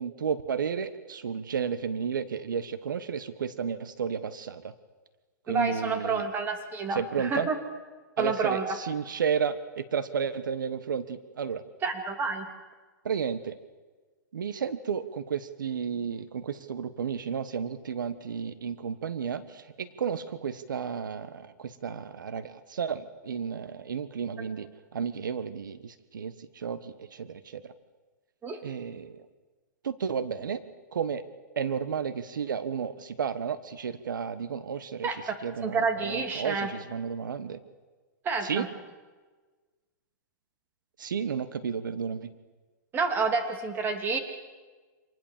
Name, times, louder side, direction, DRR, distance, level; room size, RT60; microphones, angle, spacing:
voice 1, 0.0-4.7 5.5-6.3 6.9-7.5 8.2-11.6 13.0-13.6 14.3-27.7 28.6-29.2 29.8-30.6 30.9-31.2 31.5-37.6 38.4-38.7 41.0-42.3, right 7 dB, 85° right, 13 dB, 1.4 m, -32 dB
voice 2, 5.5-7.6 8.2-8.6 11.8-12.5 28.4-28.6 35.0-35.3 35.6-36.7 38.2-38.7 42.9-44.2, right 4 dB, 20° right, 6 dB, 2.9 m, -29 dB
26.5 x 20.0 x 7.5 m, 1.3 s
hypercardioid pair, 140°, 10 cm